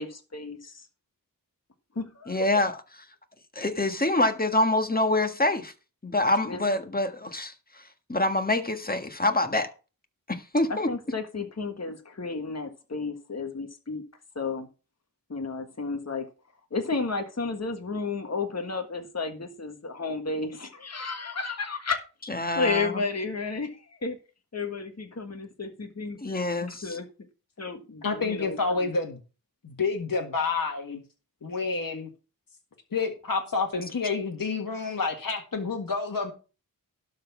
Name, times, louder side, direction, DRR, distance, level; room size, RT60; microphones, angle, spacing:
voice 1, 0.0-0.7 1.9-2.4 6.5-6.6 10.7-14.0 14.3-14.7 15.3-16.3 16.7-22.0 22.3-24.2 24.5-27.1 27.6-28.9, left 4 dB, 50° left, 1.6 m, -32 dB
voice 2, 2.3-2.8 3.5-5.7 6.0-9.7 10.3-10.9 22.3-23.0 26.2-27.0, left 2 dB, 25° left, 1.5 m, -26 dB
voice 3, 28.0-29.2 29.6-31.0 31.4-32.1 32.9-36.3, left 4 dB, 70° left, 1.8 m, -29 dB
12.0 x 4.2 x 7.1 m
wide cardioid pair, 65°, 35 cm